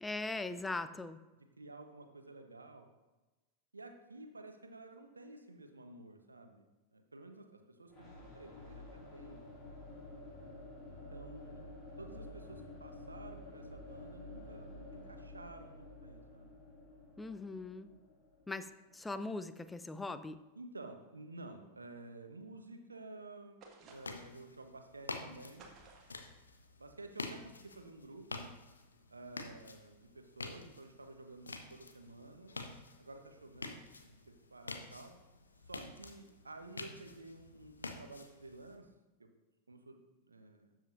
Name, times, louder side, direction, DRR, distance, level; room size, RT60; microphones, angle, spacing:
voice 1, 0.0-1.2 17.2-17.9 18.5-18.7 18.9-20.4, left 2 dB, 10° left, 12 dB, 0.5 m, -40 dB
voice 2, 1.3-2.9 3.7-6.7 6.9-9.4 10.1-10.6 10.9-16.5 20.5-23.6 23.9-25.6 26.8-28.5 29.1-32.6 33.0-35.2 35.6-38.9 39.2-39.3 39.7-40.8, right 2 dB, 80° right, 6 dB, 1.0 m, -52 dB
sound 1, 7.9-19.7, left 2 dB, 30° left, 2.8 m, -51 dB
sound 2, 23.6-24.4 25.6-26.3, right 3 dB, 35° right, 1.5 m, -57 dB
sound 3, 23.9-38.8, left 3 dB, 75° left, 0.8 m, -49 dB
12.5 x 7.6 x 2.6 m, 1.1 s
figure-of-eight pair, 90°, 0 cm